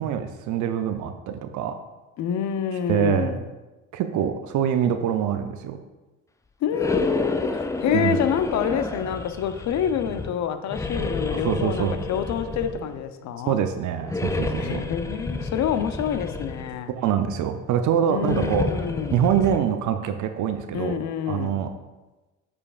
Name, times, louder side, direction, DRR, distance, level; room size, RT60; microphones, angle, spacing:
voice 1, 0.0-1.8 2.9-3.3 3.9-5.8 7.9-8.2 11.3-12.0 13.5-14.8 17.0-18.7 19.1-21.0 21.3-21.7, right 9 dB, 50° right, 8 dB, 0.6 m, -24 dB
voice 2, 2.2-3.4 6.6-13.6 14.6-16.9 18.1-19.3 20.7-21.6, left 8 dB, 45° left, 10 dB, 0.7 m, -27 dB
sound 1, 6.7-10.3 10.7-13.1 14.0-16.8 18.2-19.6, left 3 dB, 10° left, 0.4 m, -30 dB
8.4 x 5.1 x 2.5 m, 1.1 s
hypercardioid pair, 65°, 38 cm